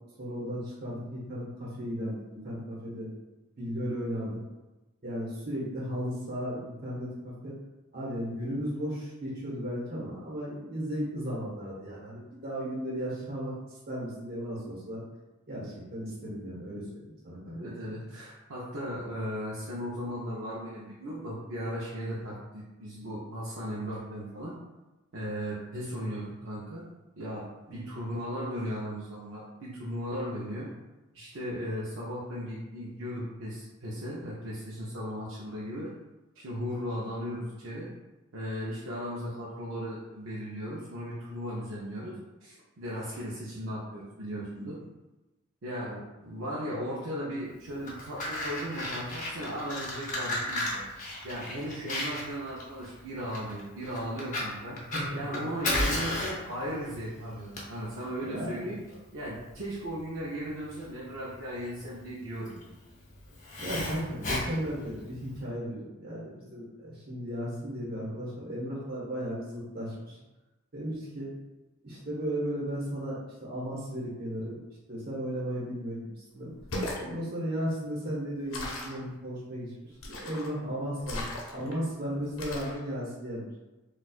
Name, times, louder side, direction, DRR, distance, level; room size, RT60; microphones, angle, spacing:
voice 1, 0.2-3.1 3.6-4.4 5.0-7.5 7.9-13.5 13.9-15.0 15.5-17.6 27.7-27.8 45.8-46.0 54.9-55.4 58.3-58.5 63.6-70.2 70.7-71.3 71.8-74.6 74.9-76.5 76.9-79.7 80.0-83.4, equal, 50° right, -6 dB, 1.2 m, -35 dB
voice 2, 17.5-24.6 25.1-26.8 27.2-30.7 31.1-35.9 36.4-37.9 38.3-44.8 45.6-45.9 46.2-50.8 51.2-54.8 55.1-58.8 59.1-62.7 70.0-70.1, equal, 75° right, -7 dB, 0.6 m, -36 dB
Fire, 47.7-65.4, left 1 dB, 35° left, 0.7 m, -35 dB
sound 1, 76.5-77.1 78.5-79.0 80.0-80.5 81.0-81.7 82.4-82.8, left 1 dB, 80° left, 0.7 m, -36 dB
4.3 x 2.4 x 2.4 m, 1.1 s
head